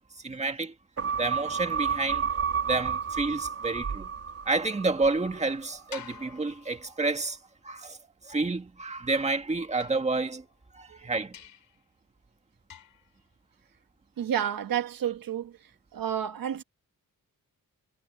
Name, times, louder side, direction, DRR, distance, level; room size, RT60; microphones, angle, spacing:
voice 1, 0.2-0.7 1.2-2.3 2.7-4.1 4.5-7.4 7.6-8.0 8.2-10.5 10.7-11.4, right 3 dB, 20° right, 1.9 m, -29 dB
sound 1, 1.0-5.6 6.0-6.1, right 6 dB, 45° right, 3.0 m, -31 dB
sound 2, 5.9-7.3 9.8-10.7 11.3-11.8 12.7-13.2, left 8 dB, 75° left, 4.0 m, -48 dB
voice 2, 14.2-15.6 15.9-16.6, right 9 dB, 75° right, 1.6 m, -30 dB
wide cardioid pair, 160°, 34 cm